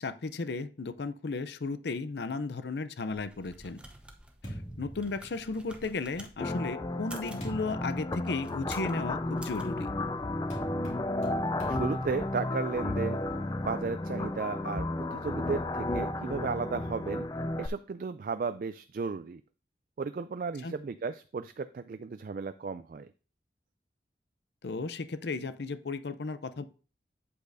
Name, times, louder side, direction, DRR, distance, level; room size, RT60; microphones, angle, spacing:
voice 1, 0.0-3.8 4.8-9.9 20.6-20.7 24.6-26.7, left 3 dB, 75° left, 13 dB, 0.6 m, -35 dB
sound 1, 3.1-6.3 6.9-7.5 8.2-9.0 9.4-9.6, right 1 dB, 5° right, 0.8 m, -50 dB
sound 2, 3.3-5.9 6.6-13.7, equal, 40° left, 2.4 m, -45 dB
sound 3, 6.4-17.7, left 2 dB, 20° left, 0.4 m, -33 dB
voice 2, 11.7-13.3 13.7-17.3 17.6-19.4 20.0-23.1, right 5 dB, 50° right, 11 dB, 0.3 m, -34 dB
8.7 x 8.1 x 2.6 m, 0.35 s
head